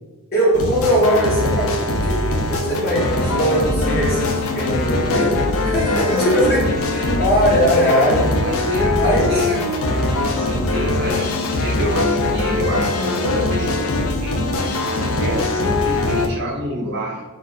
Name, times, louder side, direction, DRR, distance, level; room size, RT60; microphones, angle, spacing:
voice 1, 0.3-8.3 8.9-9.4, equal, 45° left, -8 dB, 1.1 m, -20 dB
sound 1, 0.5-16.3, left 2 dB, 65° left, 0.6 m, -21 dB
voice 2, 6.8-7.3 8.4-9.8 10.2-14.8 15.2-17.2, equal, 50° right, -4 dB, 0.9 m, -28 dB
4.6 x 2.4 x 3.9 m, 1.2 s
head